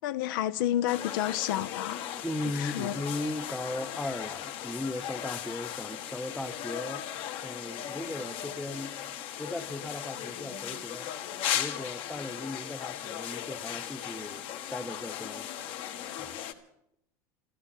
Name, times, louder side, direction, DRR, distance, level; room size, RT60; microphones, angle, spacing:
voice 1, 0.0-2.0 2.5-3.0, left 12 dB, 75° left, 0.7 m, -30 dB
sound 1, 0.9-16.5, left 11 dB, 55° left, 1.3 m, -37 dB
voice 2, 2.2-7.1 7.4-9.0 9.4-11.1 11.5-15.5 16.2-16.4, left 1 dB, 5° left, 0.8 m, -37 dB
14.5 x 12.5 x 7.2 m
supercardioid pair, 115°, 11 cm